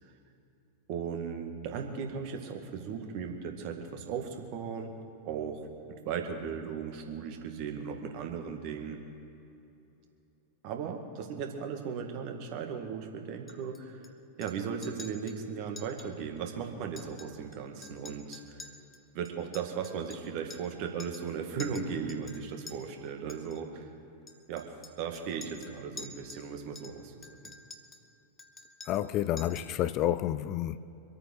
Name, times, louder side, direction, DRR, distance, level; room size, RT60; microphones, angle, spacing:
voice 1, 0.9-4.9 5.3-5.7 6.1-9.0 10.6-14.0 14.4-18.6 19.1-23.8 24.5-24.7 25.0-27.5, right 6 dB, 45° right, 1.9 m, -37 dB
Chink clink, 13.5-14.1 14.4-14.6 14.8-15.4 15.8-16.1 16.4-16.5 16.8-17.6 17.8-20.7 21.0-21.3 21.6-22.8 23.3-23.6 24.3-26.5 26.7-28.1 28.4-29.1 29.4-29.8, left 3 dB, 15° left, 1.2 m, -49 dB
voice 2, 28.9-30.8, left 12 dB, 35° left, 0.4 m, -29 dB
25.0 x 8.8 x 6.4 m
figure-of-eight pair, 90°, 0 cm